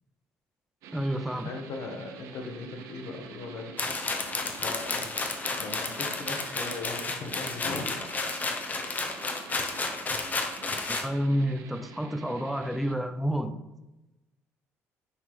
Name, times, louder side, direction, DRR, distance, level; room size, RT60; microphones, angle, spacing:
sound 1, 0.8-13.0, right 5 dB, 75° right, 0.9 m, -47 dB
voice 1, 0.9-1.5 10.9-13.6, equal, ahead, 8 dB, 0.7 m, -29 dB
voice 2, 1.4-3.7 4.4-5.1 5.6-7.9, left 3 dB, 60° left, 4 dB, 1.5 m, -38 dB
sound 2, 3.8-11.1, left 3 dB, 30° left, 1.1 m, -32 dB
10.0 x 3.6 x 5.0 m, 1.0 s
cardioid pair, 100°, 6 cm